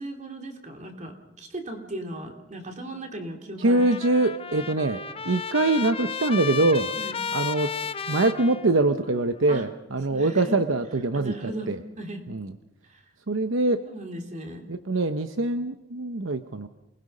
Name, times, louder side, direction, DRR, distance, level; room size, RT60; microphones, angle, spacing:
voice 1, 0.0-3.8 7.0-7.2 9.5-9.6 10.1-10.6 11.1-11.7 12.0-12.2 12.8-13.0 13.9-14.6, right 1 dB, 40° right, 4 dB, 3.1 m, -37 dB
Trumpet, 3.6-9.2, left 6 dB, 30° left, 0.7 m, -33 dB
voice 2, 3.6-6.9 7.3-7.7 8.1-11.8 12.3-12.5 13.3-13.8 14.7-16.7, right 2 dB, 75° right, 8 dB, 0.9 m, -24 dB
28.5 x 20.5 x 5.5 m, 0.89 s
head